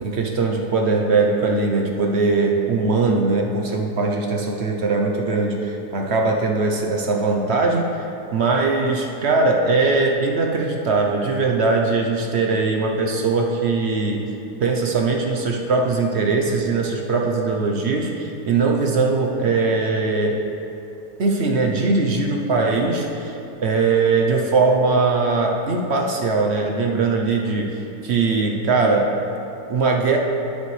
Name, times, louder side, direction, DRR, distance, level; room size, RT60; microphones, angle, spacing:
voice 1, 0.0-7.9 8.3-14.3 14.6-20.4 21.2-23.3 23.6-29.1 29.7-30.2, right 3 dB, 55° right, 1 dB, 0.9 m, -20 dB
11.5 x 8.5 x 3.3 m, 2.8 s
omnidirectional pair, 1.7 m